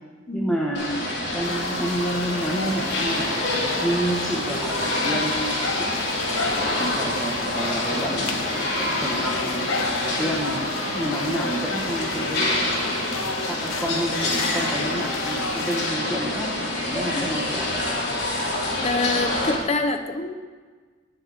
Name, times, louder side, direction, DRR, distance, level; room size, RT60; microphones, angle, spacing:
voice 1, 0.3-6.1 6.9-9.7 10.0-10.6 10.9-17.7, right 1 dB, 5° left, -4 dB, 1.4 m, -29 dB
sound 1, 0.7-19.6, left 1 dB, 55° left, 3.6 m, -27 dB
sound 2, 1.4-15.9, left 4 dB, 85° left, 1.0 m, -34 dB
voice 2, 18.8-20.3, left 2 dB, 30° left, 7 dB, 0.8 m, -26 dB
21.0 x 7.7 x 3.6 m, 1.4 s
head